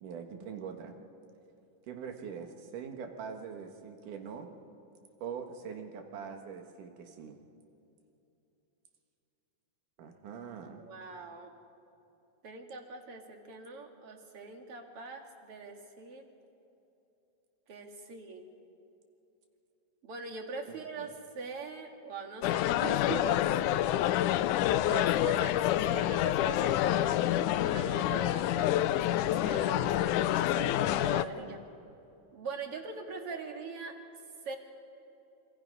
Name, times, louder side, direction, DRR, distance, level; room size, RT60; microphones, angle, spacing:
voice 1, 0.0-1.0 1.9-4.5 5.2-7.4 10.0-10.9 20.7-21.1 31.3-31.6, right 6 dB, 70° right, 5 dB, 3.1 m, -43 dB
voice 2, 10.8-11.5 12.4-16.3 17.7-18.5 20.0-24.0 24.3-27.3 27.6-31.6 32.3-33.9 34.4-34.6, right 4 dB, 50° right, 3 dB, 2.6 m, -42 dB
sound 1, 22.4-31.3, left 13 dB, 80° left, 2.0 m, -28 dB
27.0 x 25.5 x 5.4 m, 2.8 s
omnidirectional pair, 3.8 m